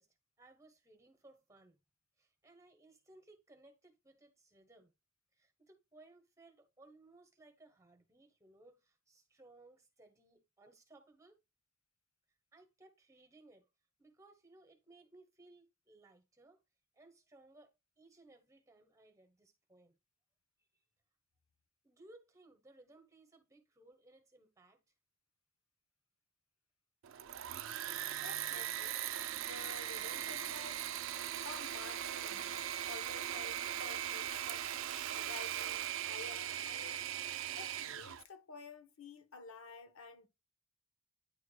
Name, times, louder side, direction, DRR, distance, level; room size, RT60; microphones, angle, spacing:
voice 1, 0.0-1.8 2.2-4.9 5.3-11.4 12.5-13.7 14.0-16.6 16.9-20.0 21.8-24.8, right 2 dB, 15° right, 1.1 m, -62 dB
Engine / Mechanisms, 27.0-38.2, right 11 dB, 75° right, 0.5 m, -39 dB
voice 2, 27.5-29.0 29.4-30.9 31.4-34.8 35.1-37.1 37.6-40.3, left 4 dB, 85° left, 1.0 m, -52 dB
9.6 x 4.6 x 2.3 m
head